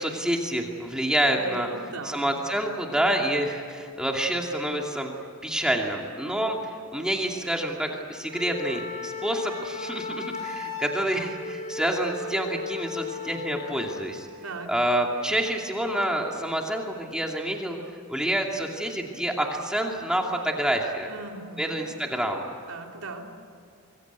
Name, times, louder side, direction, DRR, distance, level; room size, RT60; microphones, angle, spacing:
voice 1, 0.0-5.1 5.4-6.6 6.9-14.3 14.7-17.8 18.1-21.1 21.6-22.5, right 1 dB, 5° right, 1 dB, 2.6 m, -28 dB
voice 2, 1.3-2.4 14.4-14.7 21.1-21.8 22.7-23.3, right 3 dB, 80° right, 2 dB, 3.2 m, -39 dB
Wind instrument woodwind instrument, 8.3-14.1, left 4 dB, 35° left, 4.0 m, -35 dB
26.5 x 22.5 x 8.4 m, 2.5 s
head